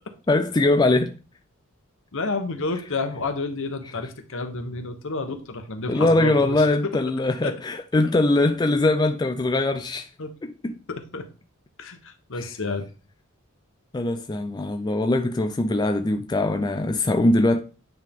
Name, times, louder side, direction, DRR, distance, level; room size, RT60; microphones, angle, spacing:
voice 1, 0.3-1.1 5.9-10.1 10.4-10.7 12.3-12.5 13.9-17.6, left 2 dB, 20° left, 0.4 m, -22 dB
voice 2, 2.1-6.6 7.4-7.6 10.2-10.3 10.9-11.3 11.8-12.9, left 3 dB, 65° left, 1.0 m, -30 dB
9.1 x 3.6 x 3.5 m
head